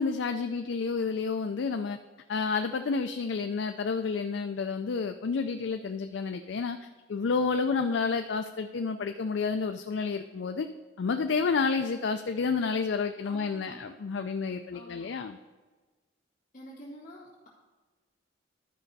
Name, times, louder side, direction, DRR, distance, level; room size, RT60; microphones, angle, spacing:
voice 1, 0.0-2.0 2.3-6.8 7.1-10.7 11.0-15.4, left 5 dB, 85° left, 7 dB, 0.4 m, -30 dB
voice 2, 13.2-13.8 14.7-15.2 16.5-17.5, equal, 45° left, -8 dB, 1.8 m, -47 dB
12.0 x 5.3 x 4.0 m, 1.3 s
head